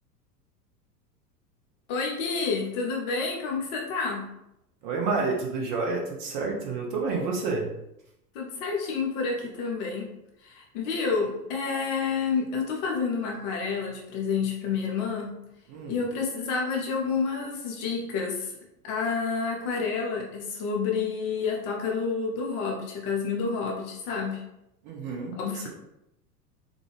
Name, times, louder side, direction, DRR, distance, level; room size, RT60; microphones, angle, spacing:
voice 1, 1.9-4.2 8.3-10.1 10.4-15.3 15.9-18.5 18.8-24.4 25.4-25.7, left 5 dB, 30° left, -1 dB, 0.5 m, -29 dB
voice 2, 4.8-7.7 15.7-16.0 24.8-25.7, right 4 dB, 30° right, 0 dB, 0.5 m, -29 dB
3.6 x 2.2 x 3.3 m, 0.84 s
figure-of-eight pair, 85°, 48 cm